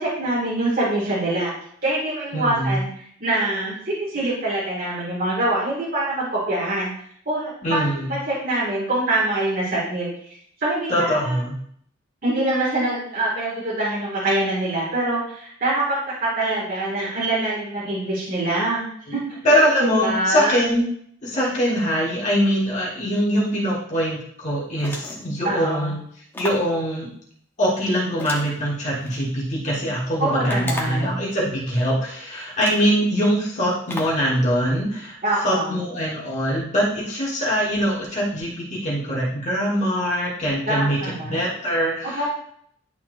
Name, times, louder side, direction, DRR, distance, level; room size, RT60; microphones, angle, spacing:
voice 1, 0.0-1.5 1.8-6.9 7.3-10.1 10.6-11.4 12.2-19.4 19.8-20.6 25.4-25.9 30.2-31.2 35.2-35.8 40.7-41.4 42.1-42.3, right 2 dB, 45° right, -6 dB, 1.9 m, -24 dB
voice 2, 2.3-2.8 7.6-8.1 10.9-11.6 19.4-20.9 21.2-26.0 26.4-27.1 27.6-35.2 35.4-41.0 41.2-42.3, equal, 35° left, -5 dB, 1.5 m, -23 dB
sound 1, 24.8-25.3 26.3-26.7 28.2-29.2 30.5-31.1 32.0-32.1 32.6-32.9 33.9-34.3, left 1 dB, 10° left, 0.9 m, -34 dB
11.0 x 4.2 x 2.5 m, 0.65 s
head